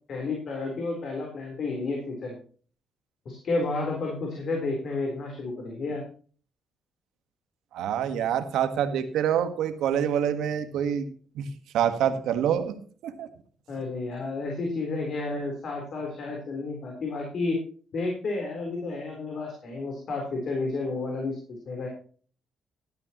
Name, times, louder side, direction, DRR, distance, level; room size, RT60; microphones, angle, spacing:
voice 1, 0.1-2.4 3.3-6.0 13.7-17.6 17.9-21.9, left 3 dB, 55° left, 0 dB, 3.8 m, -31 dB
voice 2, 7.7-11.5 11.7-12.8 13.0-13.3, right 9 dB, 85° right, 9 dB, 1.4 m, -26 dB
15.0 x 12.0 x 3.0 m, 0.42 s
cardioid pair, 90°, 0 cm